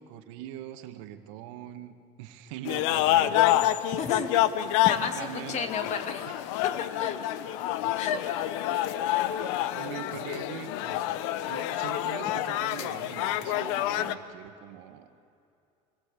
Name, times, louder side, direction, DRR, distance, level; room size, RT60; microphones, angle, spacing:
voice 1, 0.0-3.6 4.8-5.6 6.3-6.4 7.9-8.0 8.7-9.2 9.7-15.1, right 12 dB, 85° right, 8 dB, 1.7 m, -42 dB
sound 1, 2.6-14.1, left 13 dB, 85° left, 1.0 m, -28 dB
voice 2, 3.9-4.3 4.8-6.2 7.0-7.3 8.0-8.2, left 6 dB, 45° left, 7 dB, 2.5 m, -32 dB
27.0 x 20.5 x 8.4 m, 2.6 s
cardioid pair, 125°, 16 cm